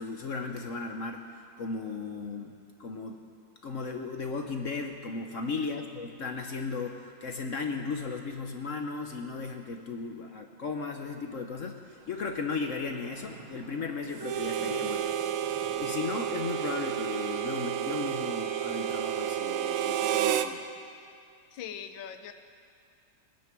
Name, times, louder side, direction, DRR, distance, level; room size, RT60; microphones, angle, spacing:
voice 1, 0.0-3.2 3.6-15.1 15.8-20.6, left 4 dB, 55° left, 4 dB, 0.9 m, -36 dB
Mechanisms, 11.8-17.0, right 3 dB, 65° right, 2.1 m, -52 dB
Harmonica, 14.2-20.5, right 10 dB, 85° right, 1.5 m, -30 dB
voice 2, 21.5-22.3, left 8 dB, 70° left, 8 dB, 1.5 m, -41 dB
22.0 x 10.0 x 6.1 m, 2.3 s
omnidirectional pair, 2.2 m